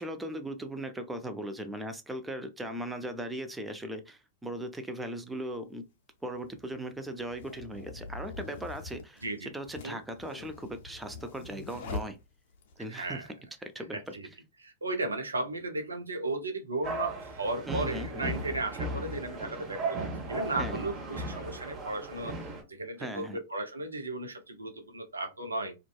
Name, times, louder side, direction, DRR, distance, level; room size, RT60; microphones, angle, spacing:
voice 1, 0.0-5.8 6.2-12.2 12.8-13.3 13.6-14.2 17.7-18.3 20.6-20.9 23.0-23.4, right 1 dB, 10° right, 0.4 m, -38 dB
sound 1, 5.3-5.4 6.3-12.8, left 3 dB, 60° left, 0.5 m, -43 dB
voice 2, 12.9-13.3 13.9-14.3 14.6-22.4 22.7-25.7, right 2 dB, 85° right, 0.5 m, -35 dB
sound 2, 16.8-22.6, right 2 dB, 30° right, 0.8 m, -36 dB
2.5 x 2.2 x 2.3 m
figure-of-eight pair, 100°, 0 cm